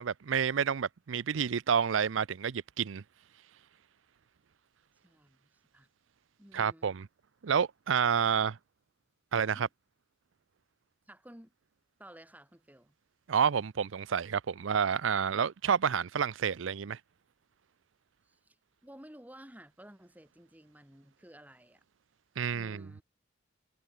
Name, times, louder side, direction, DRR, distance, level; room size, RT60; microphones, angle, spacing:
voice 1, 0.0-3.0 6.5-7.1 7.4-8.5 9.3-9.7 13.3-17.0 22.4-22.9, right 7 dB, 75° right, 0.5 m, -29 dB
voice 2, 5.0-5.9 6.4-6.9 9.5-9.7 11.1-11.5 12.0-12.9 18.2-18.6 18.8-21.8 22.5-23.0, right 1 dB, 10° right, 3.5 m, -54 dB
head